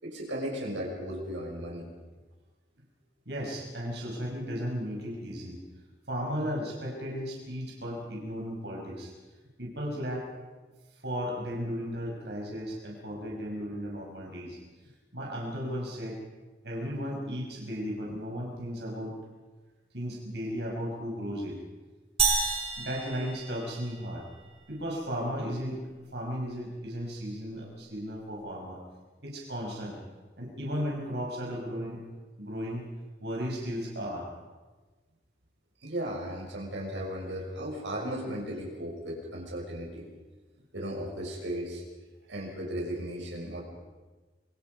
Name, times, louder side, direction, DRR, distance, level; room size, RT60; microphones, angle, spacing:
voice 1, 0.0-1.9 35.8-40.1 40.7-41.8 42.3-43.6, equal, 90° right, -1 dB, 6.1 m, -36 dB
voice 2, 3.3-5.6 6.1-9.1 9.6-10.3 10.9-14.6 14.8-16.2 16.6-19.2 19.9-21.6 22.8-24.3 24.7-25.8 26.1-28.8 29.2-30.0 30.4-32.0 32.4-32.8 33.2-34.3, equal, 70° right, -2 dB, 5.3 m, -35 dB
sound 1, 22.2-24.1, right 5 dB, 35° right, 4.9 m, -29 dB
26.0 x 24.0 x 5.3 m, 1.3 s
head